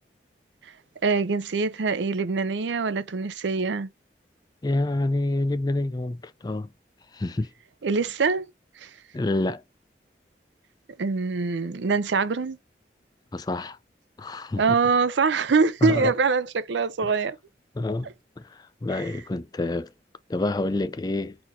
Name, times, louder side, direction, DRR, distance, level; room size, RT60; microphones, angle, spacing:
voice 1, 1.0-3.9 7.8-8.5 8.8-8.9 11.0-12.6 14.6-17.4 18.9-19.0, right 4 dB, 85° right, 0.6 m, -24 dB
voice 2, 4.6-6.7 7.1-7.5 9.1-9.6 13.3-13.8 14.2-14.6 15.8-16.1 17.0-17.2 17.8-19.9 20.3-21.4, left 2 dB, 20° left, 0.4 m, -27 dB
4.3 x 4.3 x 2.6 m
head